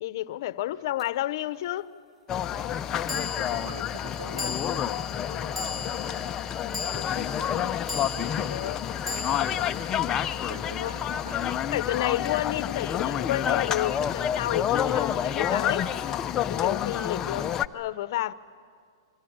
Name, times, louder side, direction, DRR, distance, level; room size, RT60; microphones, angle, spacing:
voice 1, 0.0-1.9 4.4-4.5 8.5-8.8 10.8-10.9 11.7-15.9 16.4-17.4 17.7-18.3, left 14 dB, 55° left, 0.9 m, -30 dB
sound 1, 1.0-1.1 3.1-11.5, left 4 dB, ahead, 1.3 m, -38 dB
sound 2, 2.3-17.7, left 9 dB, 20° left, 0.6 m, -29 dB
voice 2, 3.0-5.0 5.3-6.3 6.8-9.7 10.4-12.1 12.7-13.3 17.2-17.6, right 2 dB, 80° right, 2.7 m, -45 dB
sound 3, 3.2-3.9, right 5 dB, 35° right, 1.1 m, -49 dB
26.5 x 24.0 x 8.7 m
hypercardioid pair, 145°, 3 cm